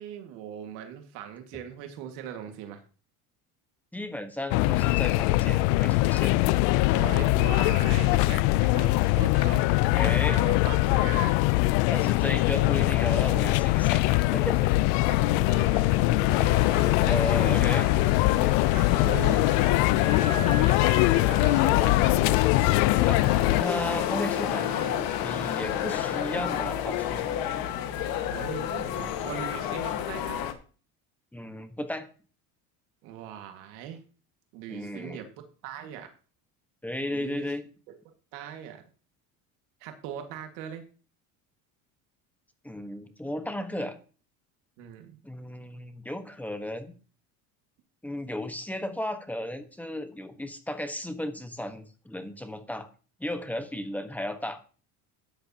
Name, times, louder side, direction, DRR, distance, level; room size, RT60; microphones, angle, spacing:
voice 1, 0.0-2.8 6.9-11.4 15.1-17.0 17.7-17.9 18.7-19.4 20.2-22.2 25.8-25.9 28.2-30.4 33.0-34.0 34.5-35.3 35.6-36.1 37.1-37.5 37.9-38.8 39.8-40.9 44.8-45.2, right 9 dB, 85° right, 5 dB, 1.9 m, -40 dB
voice 2, 3.9-6.5 9.9-10.4 11.9-15.1 17.0-17.9 23.1-23.2 23.5-24.7 25.2-27.4 31.3-32.1 34.7-35.2 36.8-37.6 42.6-44.0 45.2-47.0 48.0-52.9 53.2-54.6, left 1 dB, 5° left, 8 dB, 1.2 m, -34 dB
sound 1, 4.5-23.6, left 19 dB, 85° left, 0.5 m, -22 dB
sound 2, 16.3-30.5, left 10 dB, 65° left, 1.6 m, -30 dB
13.5 x 9.6 x 2.8 m, 0.38 s
cardioid pair, 130°, 38 cm